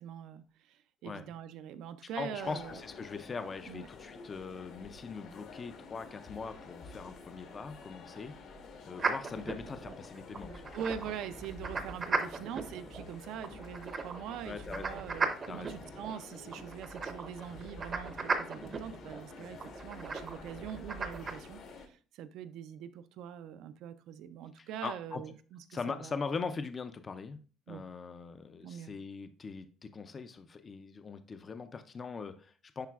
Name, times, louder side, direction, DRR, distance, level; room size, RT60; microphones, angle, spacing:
voice 1, 0.0-2.8 3.7-3.9 10.7-26.2 27.7-27.8 28.6-28.9, right 8 dB, 75° right, 12 dB, 0.4 m, -43 dB
voice 2, 2.1-8.4 8.8-10.6 12.2-12.3 14.4-15.0 15.5-15.8 18.5-18.8 19.4-19.6 24.8-25.2 25.7-27.4 27.7-32.9, left 4 dB, 25° left, 10 dB, 0.4 m, -41 dB
sound 1, 2.4-21.9, left 4 dB, 65° left, 1.1 m, -50 dB
sound 2, 9.0-21.3, right 4 dB, 30° right, 0.6 m, -38 dB
10.5 x 4.0 x 2.4 m, 0.39 s
cardioid pair, 165°, 0 cm